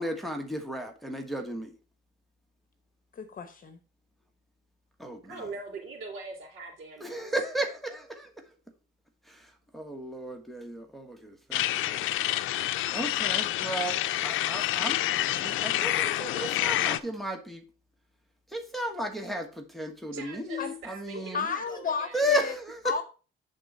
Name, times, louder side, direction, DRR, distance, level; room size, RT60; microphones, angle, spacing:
voice 1, 0.0-1.7 5.0-5.2 7.0-8.3 9.3-9.4 9.7-12.0 12.9-14.0 14.2-15.0 15.4-17.6 18.5-21.5 22.1-22.9, equal, ahead, 1.3 m, -34 dB
voice 2, 3.2-3.8 20.6-20.7 21.3-22.5 22.8-23.0, left 6 dB, 45° left, 1.0 m, -32 dB
voice 3, 5.2-7.2 20.1-22.2, right 4 dB, 85° right, 2.5 m, -42 dB
sound 1, 11.5-17.0, left 14 dB, 85° left, 0.5 m, -28 dB
8.6 x 3.9 x 5.3 m
cardioid pair, 90°, 20 cm